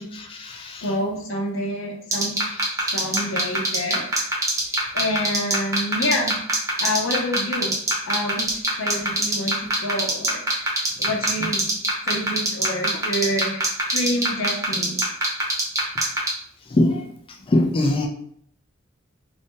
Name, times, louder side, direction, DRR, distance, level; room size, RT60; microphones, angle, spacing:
voice 1, 0.1-0.9 2.8-2.9 16.7-17.1 17.5-18.1, left 1 dB, 25° left, 1 dB, 0.3 m, -22 dB
voice 2, 0.8-2.4 2.9-4.1 4.9-6.3 6.8-7.7 8.1-11.7 12.0-15.0, left 1 dB, 85° left, 1 dB, 0.7 m, -27 dB
sound 1, 2.1-16.3, right 2 dB, 15° right, 0.8 m, -21 dB
2.6 x 2.6 x 3.5 m, 0.66 s
head